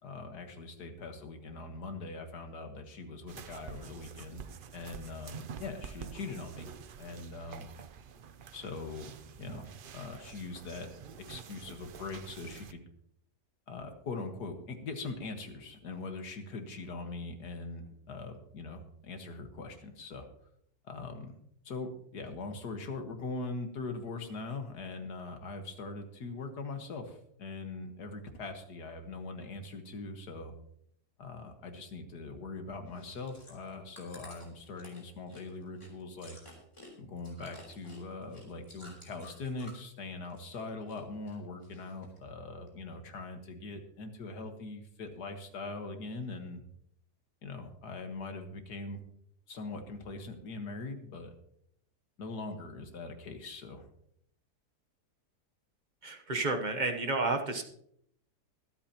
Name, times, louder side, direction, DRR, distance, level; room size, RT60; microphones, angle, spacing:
voice 1, 0.0-4.4 4.7-6.7 7.0-7.7 8.5-9.1 9.4-10.9 11.3-12.8 13.7-20.3 20.8-21.4 21.6-30.6 31.2-36.4 37.0-46.6 47.4-49.0 49.5-51.3 52.2-53.9, left 3 dB, 75° left, 5 dB, 2.1 m, -41 dB
sound 1, 3.3-12.7, right 7 dB, 75° right, 0.4 m, -48 dB
Chewing mastication, 32.9-39.9 40.2-41.0 41.3-42.2 42.7-42.8, left 1 dB, 15° left, 3.4 m, -53 dB
voice 2, 56.0-57.6, right 2 dB, 35° right, 5 dB, 1.0 m, -31 dB
23.5 x 8.5 x 3.0 m, 0.71 s
omnidirectional pair, 1.7 m